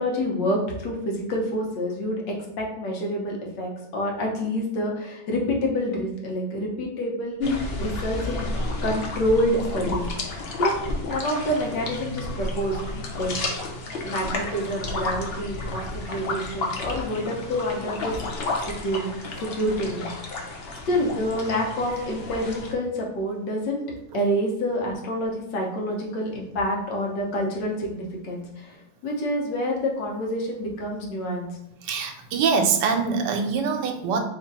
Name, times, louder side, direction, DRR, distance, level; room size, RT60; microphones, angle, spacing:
voice 1, 0.0-7.4 7.8-8.5 8.8-10.1 10.6-10.7 11.1-12.8 13.1-13.3 14.0-18.2 18.6-19.1 19.4-20.1 20.9-23.8 24.1-28.7 29.0-31.5, equal, 85° left, -1 dB, 1.6 m, -27 dB
sound 1, 7.4-22.7, left 2 dB, 70° left, 0.5 m, -31 dB
voice 2, 31.8-34.2, right 5 dB, 85° right, 6 dB, 1.2 m, -24 dB
3.5 x 2.5 x 4.0 m, 0.85 s
omnidirectional pair, 1.9 m